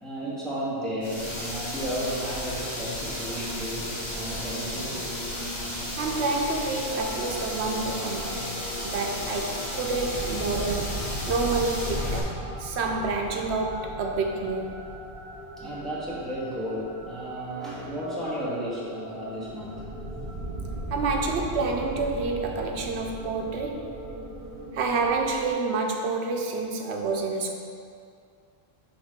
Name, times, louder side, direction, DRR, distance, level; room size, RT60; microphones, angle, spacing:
voice 1, 0.0-5.1 15.6-19.9, right 1 dB, ahead, -9 dB, 1.6 m, -33 dB
sound 1, 1.0-12.2, left 1 dB, 30° left, 1.1 m, -33 dB
voice 2, 6.0-8.6 8.8-12.3 12.6-14.8 20.9-23.9 24.7-27.5, right 3 dB, 85° right, 2 dB, 0.9 m, -28 dB
sound 2, 6.9-25.5, right 1 dB, 60° right, 1.4 m, -38 dB
7.1 x 3.5 x 5.0 m, 2.3 s
omnidirectional pair, 1.1 m